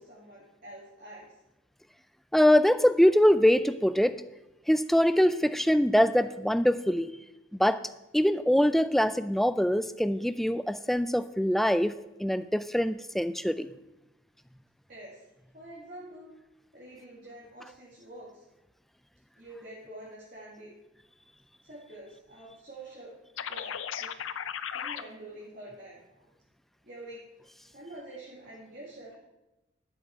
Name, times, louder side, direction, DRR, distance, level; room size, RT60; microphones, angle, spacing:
voice 1, 0.0-1.4 14.9-15.3 15.5-16.3 16.7-18.5 19.4-20.7 21.6-23.1 23.5-24.1 24.7-26.3 26.8-27.2 27.5-29.2, right 1 dB, 45° right, -6 dB, 2.4 m, -47 dB
voice 2, 2.3-4.2 4.7-7.1 7.6-7.8 8.1-13.7, equal, ahead, 12 dB, 0.3 m, -23 dB
sound 1, 23.4-25.0, left 8 dB, 90° left, 0.6 m, -35 dB
12.0 x 7.2 x 4.7 m, 0.96 s
head